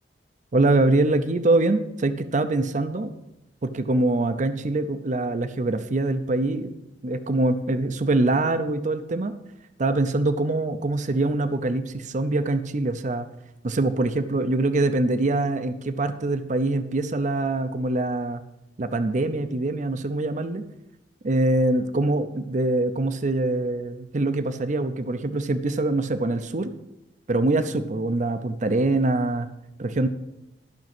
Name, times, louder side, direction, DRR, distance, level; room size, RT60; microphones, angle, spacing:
voice 1, 0.5-3.1 3.6-6.7 7.0-9.3 9.8-13.3 13.6-18.4 18.8-20.6 21.2-26.7 27.3-29.5 29.8-30.1, right 2 dB, 45° right, 11 dB, 0.6 m, -24 dB
12.0 x 6.1 x 6.0 m, 0.91 s
head